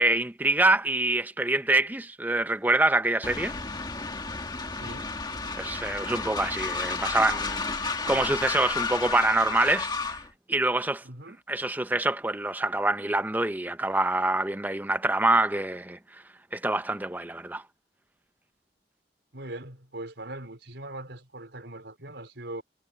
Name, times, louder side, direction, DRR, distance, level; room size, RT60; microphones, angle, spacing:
voice 1, 0.0-3.5 5.6-10.2 10.5-11.0 11.5-16.0 16.5-17.6, right 2 dB, 10° right, 0.6 m, -25 dB
Train, 3.2-10.3, left 4 dB, 25° left, 1.7 m, -32 dB
voice 2, 4.7-5.2 11.0-11.4 19.3-22.6, right 1 dB, 80° right, 4.6 m, -40 dB
head